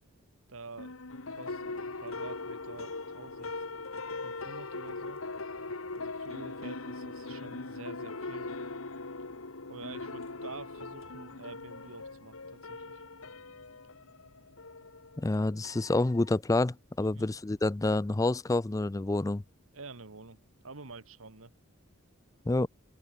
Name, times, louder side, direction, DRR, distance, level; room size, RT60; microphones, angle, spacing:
voice 1, 0.5-1.0 1.3-3.5 4.2-5.2 5.9-8.5 9.7-13.0 17.0-17.3 19.7-20.4 20.6-21.5, right 3 dB, 80° right, 1.7 m, -48 dB
sound 1, 0.8-16.4, left 3 dB, 80° left, 1.9 m, -41 dB
voice 2, 15.2-19.4 22.5-22.7, left 2 dB, 15° left, 0.4 m, -28 dB
open air
head